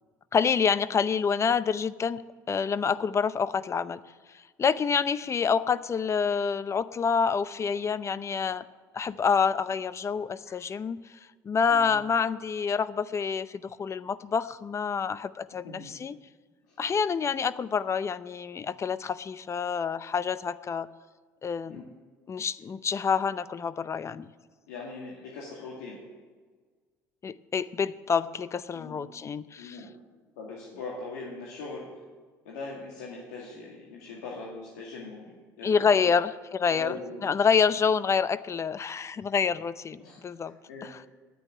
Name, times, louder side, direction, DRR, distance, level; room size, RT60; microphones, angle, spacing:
voice 1, 0.3-2.2 2.5-4.0 4.3-8.6 8.9-11.0 11.4-16.2 16.8-20.9 21.4-21.9 22.3-24.3 27.2-29.8 35.6-36.9 37.2-40.5 40.8-41.0, left 6 dB, 35° left, 16 dB, 0.6 m, -27 dB
voice 2, 24.7-26.0 28.7-29.0 29.6-29.9 30.4-31.9 32.4-36.1 36.7-37.3 40.0-40.9, left 3 dB, 90° left, -4 dB, 2.2 m, -41 dB
9.8 x 9.3 x 9.4 m, 1.5 s
supercardioid pair, 80°, 9 cm